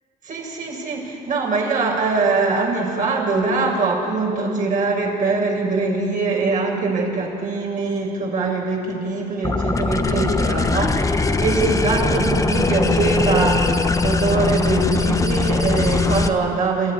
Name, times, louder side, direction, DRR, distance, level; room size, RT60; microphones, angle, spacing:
voice 1, 0.2-16.9, right 3 dB, 50° right, -1 dB, 6.5 m, -22 dB
sound 1, 9.4-16.3, left 3 dB, 20° left, 1.1 m, -20 dB
28.0 x 15.0 x 9.9 m, 2.5 s
cardioid pair, 110°, 17 cm